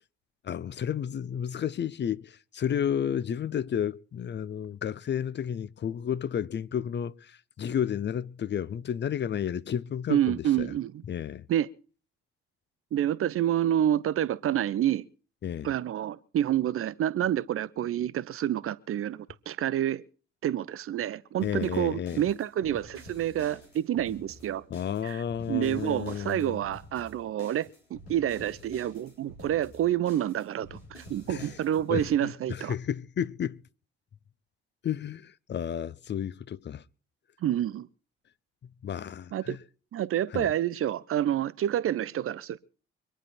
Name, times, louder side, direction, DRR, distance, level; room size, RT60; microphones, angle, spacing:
voice 1, 0.4-10.7 11.1-11.4 15.4-15.7 21.4-22.2 24.7-26.6 31.3-31.6 31.9-33.6 34.8-36.8 38.8-39.6 40.3-40.5, left 9 dB, 35° left, 0.7 m, -32 dB
voice 2, 10.1-11.0 11.5-11.7 12.9-15.1 15.6-20.0 20.4-24.6 25.0-25.2 25.5-32.7 37.4-37.9 39.3-39.6 39.9-42.6, right 11 dB, 45° right, 0.8 m, -28 dB
sound 1, 21.4-32.1, equal, 85° left, 3.8 m, -50 dB
25.0 x 10.0 x 4.3 m
figure-of-eight pair, 40°, 31 cm